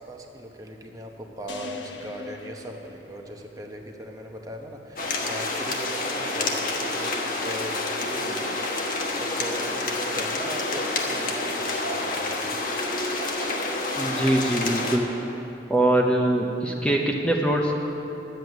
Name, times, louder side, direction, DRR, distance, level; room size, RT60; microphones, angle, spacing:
voice 1, 0.0-7.2 7.4-12.6, right 1 dB, 20° right, 2 dB, 0.9 m, -39 dB
sound 1, 1.5-3.8, left 3 dB, 85° left, 1.0 m, -42 dB
sound 2, 5.0-15.0, left 2 dB, 45° left, 1.2 m, -28 dB
voice 2, 13.9-15.1 15.7-17.7, right 1 dB, 5° left, -1 dB, 0.8 m, -23 dB
11.0 x 8.0 x 9.4 m, 2.9 s
head